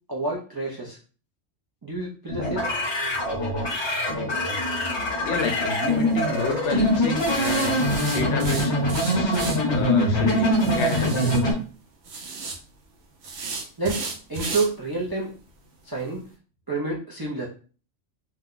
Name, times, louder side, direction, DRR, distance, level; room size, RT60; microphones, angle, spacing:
voice 1, 0.1-1.0 1.8-2.6 13.8-14.0 14.3-15.3 15.8-16.2 16.7-17.5, right 3 dB, 40° right, -2 dB, 0.3 m, -28 dB
sound 1, 2.3-11.5, left 1 dB, 25° left, 0.9 m, -23 dB
voice 2, 5.2-9.4 9.7-11.3, left 4 dB, 65° left, 4 dB, 0.9 m, -30 dB
sound 2, 5.8-6.1 7.2-9.6 10.6-11.4 12.0-12.6 13.2-14.7 15.1-15.2 15.6-15.7 16.1-16.2, right 3 dB, 65° right, 0.9 m, -34 dB
2.7 x 2.2 x 3.8 m, 0.38 s
omnidirectional pair, 1.3 m